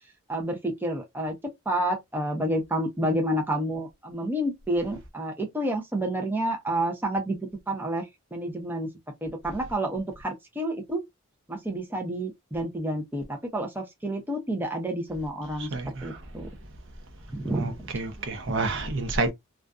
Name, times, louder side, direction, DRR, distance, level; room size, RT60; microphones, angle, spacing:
voice 1, 0.3-1.3 1.7-8.9 9.2-11.0 11.5-15.7 16.0-16.5 17.3-17.9, right 1 dB, 10° right, 0.5 m, -29 dB
voice 2, 15.6-16.2 17.5-19.3, right 3 dB, 60° right, 0.7 m, -29 dB
2.5 x 2.3 x 2.3 m
head